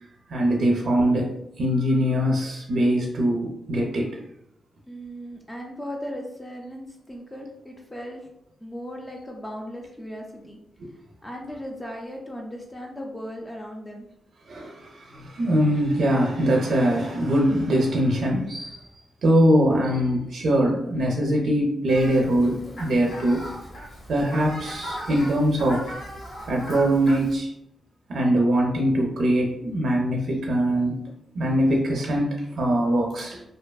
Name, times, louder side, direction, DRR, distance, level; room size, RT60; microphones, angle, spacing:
voice 1, 0.3-1.3 1.6-4.2 14.5-18.8 19.2-23.4 24.1-25.9 26.5-27.5 28.1-31.0 31.3-33.4, equal, 65° right, -1 dB, 0.4 m, -22 dB
voice 2, 4.9-8.2 8.6-10.6 11.2-14.1, equal, 10° left, 0 dB, 0.3 m, -37 dB
Fowl, 21.9-27.4, equal, 70° left, 0.9 m, -38 dB
2.6 x 2.3 x 2.2 m, 0.77 s
wide cardioid pair, 120°, 0 cm